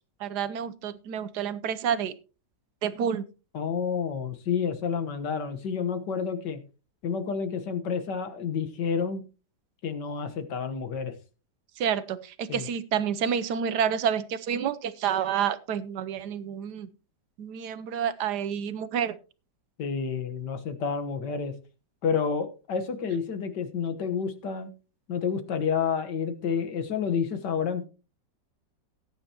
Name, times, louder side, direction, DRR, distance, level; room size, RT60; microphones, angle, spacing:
voice 1, 0.2-2.1 2.8-3.2 11.8-16.9 17.4-19.2, right 8 dB, 70° right, 13 dB, 1.3 m, -29 dB
voice 2, 3.5-6.6 7.0-9.2 9.8-11.1 12.5-12.7 19.8-21.5 22.0-24.7 25.1-27.9, left 6 dB, 75° left, 8 dB, 1.9 m, -29 dB
18.5 x 9.1 x 2.9 m, 0.33 s
omnidirectional pair, 1.9 m